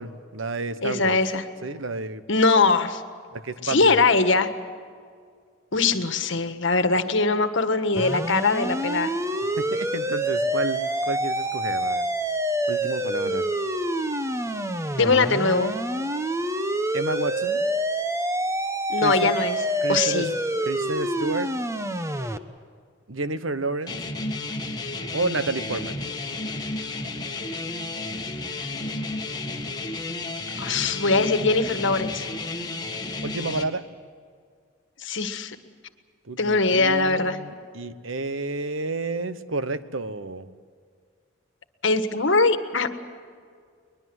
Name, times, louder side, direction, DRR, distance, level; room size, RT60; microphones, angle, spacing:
voice 1, 0.0-1.2 1.6-2.2 3.3-4.0 9.6-12.1 12.7-13.4 16.9-17.6 19.0-19.3 19.8-20.3 20.6-21.5 23.1-24.0 25.1-26.0 33.2-33.8 36.2-40.5, right 3 dB, 75° right, 12 dB, 1.1 m, -30 dB
voice 2, 0.8-1.4 2.3-3.0 3.6-4.5 5.7-9.1 15.0-15.7 18.9-19.6 19.9-20.3 30.6-32.2 35.0-35.6 36.4-37.4 41.8-42.9, left 3 dB, 65° left, 9 dB, 1.6 m, -21 dB
sound 1, 8.0-22.4, right 1 dB, 15° right, 1.0 m, -27 dB
sound 2, 23.9-33.6, left 2 dB, 20° left, 1.9 m, -32 dB
22.5 x 21.5 x 7.9 m, 2.1 s
head